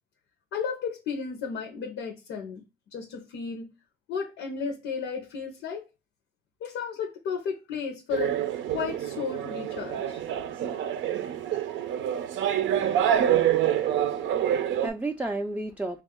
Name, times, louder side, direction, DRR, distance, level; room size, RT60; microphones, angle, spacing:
voice 1, 0.5-2.6 2.9-3.7 4.1-5.8 6.6-8.4 8.7-10.2, left 6 dB, 85° left, 0.7 m, -33 dB
sound 1, 8.1-14.9, right 10 dB, 75° right, 0.5 m, -26 dB
voice 2, 13.7-16.0, right 2 dB, 5° right, 0.3 m, -34 dB
3.4 x 2.3 x 3.5 m
cardioid pair, 90°, 20 cm